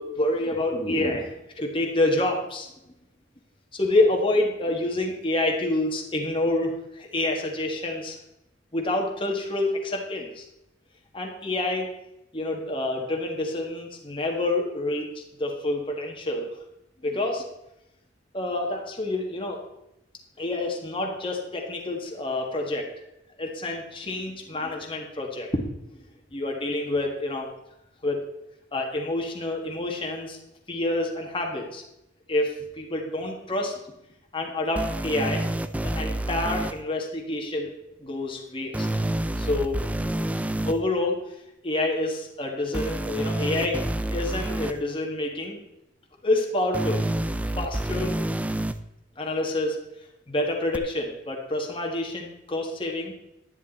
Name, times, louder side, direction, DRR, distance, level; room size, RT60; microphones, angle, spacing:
voice 1, 0.0-2.7 3.7-8.2 8.7-10.5 11.1-11.9 12.3-16.5 17.0-17.4 18.3-19.6 20.4-22.9 23.4-25.6 26.3-27.5 28.0-28.3 28.7-30.4 30.7-31.8 32.3-33.7 34.3-35.4 35.8-37.7 38.0-38.9 39.4-39.8 40.6-41.2 41.6-43.8 44.1-45.6 46.2-47.1 47.6-48.2 49.2-49.8 50.3-53.1, left 2 dB, 25° left, 1 dB, 1.6 m, -27 dB
sound 1, 34.8-36.7 38.7-40.7 42.7-44.7 46.7-48.7 50.7-50.8, right 1 dB, 5° right, 0.4 m, -28 dB
11.0 x 10.5 x 4.2 m, 0.87 s
head